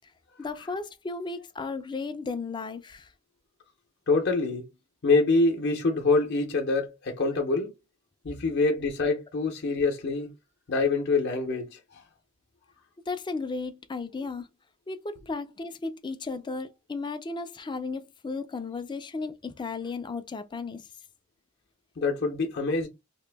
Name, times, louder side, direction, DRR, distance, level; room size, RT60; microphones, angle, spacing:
voice 1, 0.4-3.1 13.1-14.5 14.9-20.9, left 4 dB, 20° left, 0.4 m, -35 dB
voice 2, 4.1-4.6 5.0-7.7 8.2-10.3 10.7-12.0 22.0-22.9, left 3 dB, 50° left, 0.7 m, -25 dB
2.9 x 2.5 x 3.3 m
head